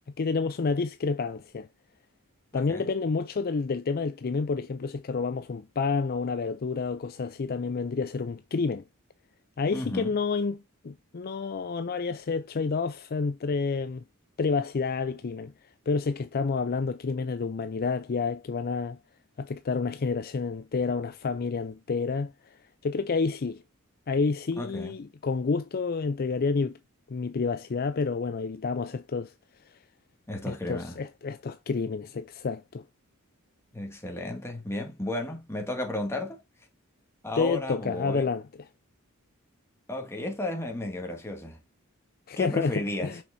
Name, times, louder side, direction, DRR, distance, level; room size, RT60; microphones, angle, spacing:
voice 1, 0.2-1.7 2.5-8.8 9.6-14.0 14.4-15.5 15.9-19.0 19.4-22.3 22.8-23.6 24.1-26.8 27.1-29.3 30.5-32.8 37.4-38.4 42.3-43.2, left 4 dB, 45° left, 0.4 m, -29 dB
voice 2, 2.5-2.8 9.7-10.1 24.6-25.0 30.3-31.0 33.7-36.4 37.2-38.3 39.9-41.6 42.4-43.2, left 1 dB, 10° left, 2.0 m, -33 dB
6.2 x 5.9 x 2.7 m
head